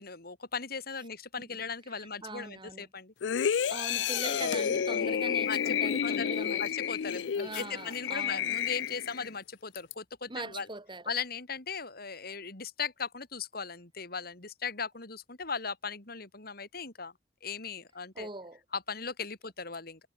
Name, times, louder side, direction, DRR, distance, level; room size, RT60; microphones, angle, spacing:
voice 1, 0.0-3.1 5.5-6.3 6.5-10.7 11.1-17.1 17.4-18.3 18.7-20.0, left 5 dB, 60° left, 3.7 m, -38 dB
voice 2, 1.9-2.9 3.6-6.6 7.3-8.6 10.3-11.1 18.1-18.6, right 2 dB, 25° right, 4.6 m, -41 dB
sound 1, 3.2-9.3 9.8-9.9, left 8 dB, 80° left, 0.4 m, -30 dB
head